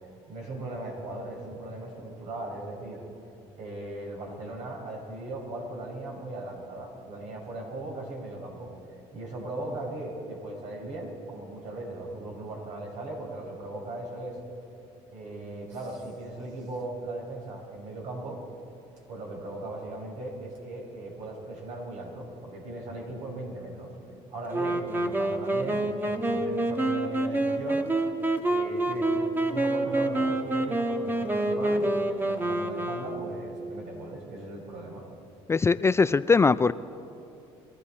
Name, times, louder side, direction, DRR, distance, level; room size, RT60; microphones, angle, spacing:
voice 1, 0.3-3.0 3.6-8.7 9.1-14.4 15.1-18.4 19.1-23.9 24.3-27.9 28.4-35.1, right 2 dB, 70° right, -1 dB, 4.8 m, -38 dB
Wind instrument woodwind instrument, 24.5-33.5, right 1 dB, 15° right, 1.3 m, -27 dB
voice 2, 35.5-36.7, left 4 dB, 20° left, 15 dB, 0.3 m, -21 dB
23.0 x 14.0 x 4.3 m, 2.8 s
supercardioid pair, 85°, 13 cm